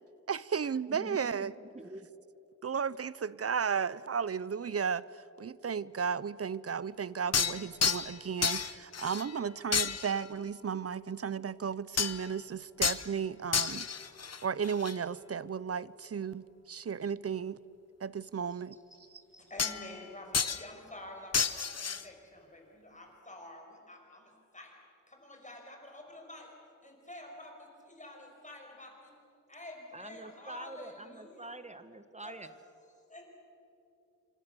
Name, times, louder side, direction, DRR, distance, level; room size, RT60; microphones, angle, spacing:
voice 1, 0.3-1.5 2.6-5.1 5.4-13.8 14.4-17.6 18.0-18.8, right 6 dB, 50° right, 0.6 m, -34 dB
voice 2, 0.9-2.1 29.9-32.5, right 2 dB, 20° right, 1.3 m, -46 dB
sound 1, 7.3-8.2 8.4-9.4 9.7-10.3 12.0-12.3 12.8-13.1 13.5-15.0 19.6-20.1 20.3-20.7 21.3-22.1, left 6 dB, 55° left, 0.9 m, -31 dB
voice 3, 19.3-24.7 25.1-26.5 26.8-29.1 29.5-31.6 32.2-32.5 33.1-33.2, left 1 dB, 25° left, 5.8 m, -49 dB
27.0 x 26.0 x 7.0 m
wide cardioid pair, 105°, 30 cm